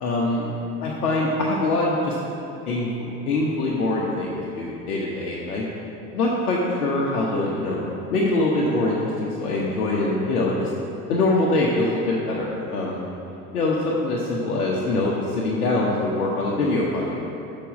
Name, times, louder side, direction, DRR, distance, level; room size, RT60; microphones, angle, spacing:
voice 1, 0.0-0.4 0.8-2.2 2.7-5.6 6.1-10.7 11.1-13.0 13.5-17.2, left 2 dB, 70° left, -4 dB, 1.0 m, -23 dB
6.8 x 5.3 x 6.1 m, 2.9 s
figure-of-eight pair, 70°, 46 cm